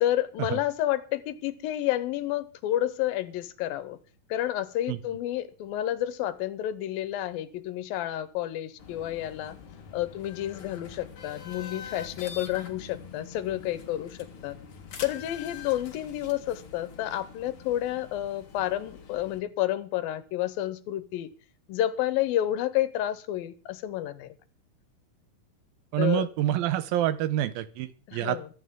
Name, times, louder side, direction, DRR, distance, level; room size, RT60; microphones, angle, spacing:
voice 1, 0.0-4.0 4.3-9.6 9.9-14.6 15.0-21.3 21.7-24.3 26.0-26.3 28.1-28.5, left 13 dB, 85° left, 14 dB, 2.7 m, -30 dB
sound 1, 8.8-19.4, left 7 dB, 45° left, 2.2 m, -44 dB
voice 2, 25.9-28.4, right 13 dB, 85° right, 14 dB, 2.7 m, -27 dB
23.0 x 9.0 x 3.7 m, 0.39 s
omnidirectional pair, 4.1 m